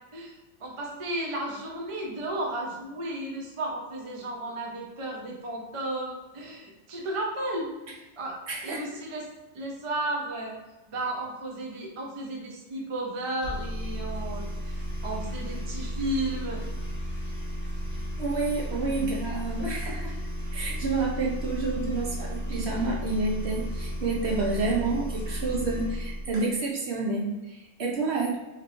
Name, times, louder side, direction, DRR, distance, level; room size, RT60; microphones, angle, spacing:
voice 1, 0.1-8.4 8.6-9.3 9.5-10.6 10.9-16.6, right 1 dB, 35° right, -1 dB, 0.5 m, -34 dB
voice 2, 8.5-8.9 18.2-20.1 20.5-28.4, right 3 dB, 60° right, -2 dB, 0.9 m, -29 dB
sound 1, 13.4-26.4, equal, 15° left, 0.4 m, -33 dB
3.3 x 3.0 x 2.5 m, 1.1 s
omnidirectional pair, 1.4 m